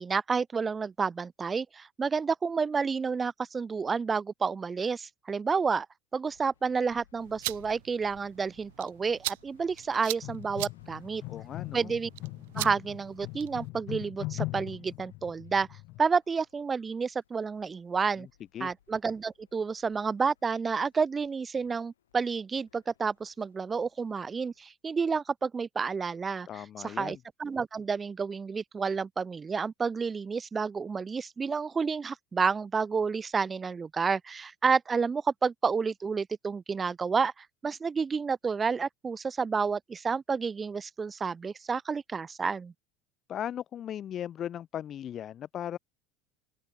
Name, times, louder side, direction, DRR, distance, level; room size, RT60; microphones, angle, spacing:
voice 1, 0.0-5.9 6.1-11.2 11.7-12.1 12.6-15.7 16.0-18.3 18.6-42.7, right 5 dB, 25° right, 0.4 m, -30 dB
sound 1, 6.3-24.7, left 10 dB, 85° left, 5.6 m, -65 dB
sound 2, 7.2-13.7, right 21 dB, 70° right, 0.7 m, -41 dB
sound 3, 10.2-16.0, left 21 dB, 60° left, 1.8 m, -40 dB
voice 2, 11.3-11.9 18.5-18.7 26.5-27.2 43.3-45.8, left 10 dB, 45° left, 0.5 m, -37 dB
hypercardioid pair, 75°, 0 cm